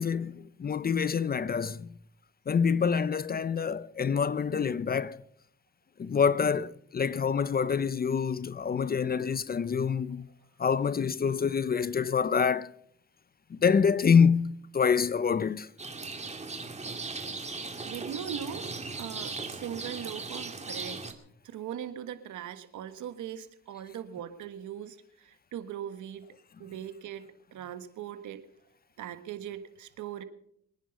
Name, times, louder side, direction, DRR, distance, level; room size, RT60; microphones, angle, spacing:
voice 1, 0.0-1.9 2.5-5.2 6.0-10.3 10.6-12.7 13.5-15.7, left 6 dB, 30° left, 0.6 m, -26 dB
Rain, 15.8-21.1, right 3 dB, 20° right, 2.2 m, -38 dB
voice 2, 17.8-18.7 19.0-21.0 21.4-26.3 26.6-28.5 29.0-30.2, right 10 dB, 80° right, 1.6 m, -40 dB
23.5 x 10.0 x 5.4 m
cardioid pair, 90°, 30 cm